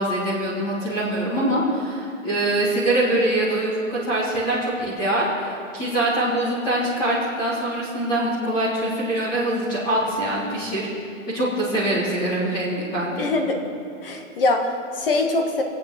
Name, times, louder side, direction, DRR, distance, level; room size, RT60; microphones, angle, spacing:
voice 1, 0.0-10.9 11.3-13.3, right 1 dB, 10° left, -8 dB, 1.6 m, -23 dB
voice 2, 13.2-13.6 14.0-15.6, left 2 dB, 40° left, 3 dB, 1.7 m, -23 dB
22.5 x 8.3 x 6.1 m, 2.4 s
hypercardioid pair, 175°, 41 cm